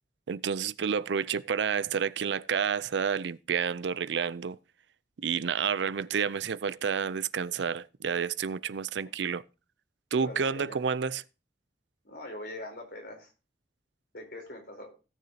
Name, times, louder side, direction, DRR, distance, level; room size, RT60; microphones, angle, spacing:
voice 1, 0.3-4.6 5.2-9.4 10.1-11.2, right 6 dB, 80° right, 0.5 m, -30 dB
voice 2, 10.1-10.8 12.0-13.3 14.1-14.9, left 1 dB, 65° left, 4.0 m, -42 dB
17.5 x 6.7 x 2.8 m
head